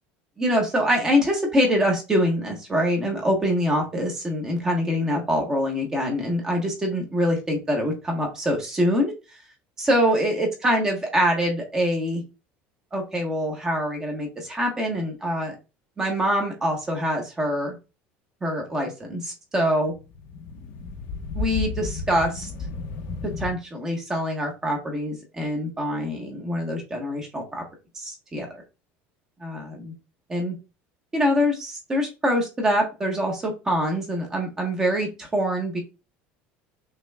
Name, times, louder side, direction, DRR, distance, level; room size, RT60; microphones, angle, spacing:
voice 1, 0.4-9.1 9.8-12.2 12.9-15.5 16.0-17.8 18.4-19.9 21.3-22.5 23.2-27.6 27.9-28.6 29.4-29.9 30.3-30.5 31.1-35.8, equal, 15° right, 1 dB, 1.1 m, -24 dB
sound 1, 19.8-23.5, left 3 dB, 50° left, 0.7 m, -33 dB
5.9 x 3.1 x 2.2 m, 0.28 s
cardioid pair, 180°, 4 cm